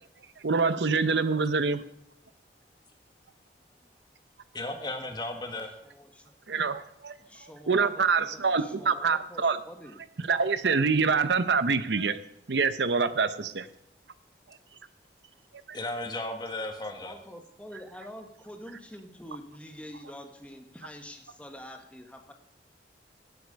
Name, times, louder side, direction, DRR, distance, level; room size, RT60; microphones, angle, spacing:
voice 1, 0.4-1.8 6.5-7.2 7.7-9.6 10.3-12.2 12.5-13.7 15.7-15.8, right 5 dB, 75° right, 13 dB, 0.7 m, -25 dB
voice 2, 4.5-5.7 15.7-17.1, left 2 dB, 25° left, 5 dB, 1.6 m, -35 dB
voice 3, 5.8-6.3 7.2-10.0 16.9-22.3, equal, 5° left, 4 dB, 1.4 m, -46 dB
17.5 x 8.1 x 5.3 m, 0.74 s
head